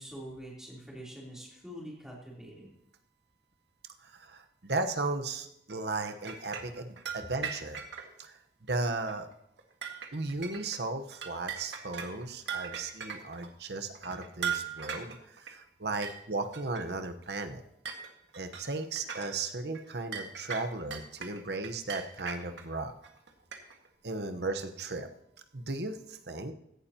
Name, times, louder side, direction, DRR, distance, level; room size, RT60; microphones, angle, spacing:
voice 1, 0.0-2.7, equal, 5° right, -4 dB, 3.5 m, -45 dB
voice 2, 4.0-7.9 8.2-9.3 10.1-17.6 18.3-22.9 24.0-25.1 25.5-26.5, right 3 dB, 70° right, 7 dB, 1.1 m, -36 dB
sound 1, 5.7-8.1 8.7-8.8 9.1-9.3 9.6-10.8 11.1-13.5 13.9-15.5 16.0-16.2 16.5-16.8 17.3-17.4 17.9-19.4 19.7-19.8 20.1-22.6 23.0-23.9, right 7 dB, 90° right, 1.8 m, -39 dB
16.0 x 11.5 x 2.9 m, 0.78 s
head